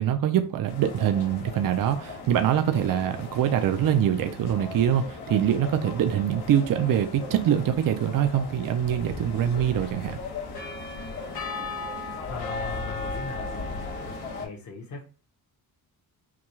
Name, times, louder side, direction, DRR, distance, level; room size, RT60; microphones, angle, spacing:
voice 1, 0.0-10.2, right 10 dB, 60° right, 0.5 m, -24 dB
sound 1, 0.7-14.5, left 3 dB, 90° left, 1.5 m, -37 dB
voice 2, 12.2-13.8 14.3-15.0, left 5 dB, 50° left, 1.0 m, -39 dB
5.9 x 2.3 x 3.1 m
wide cardioid pair, 155°, 38 cm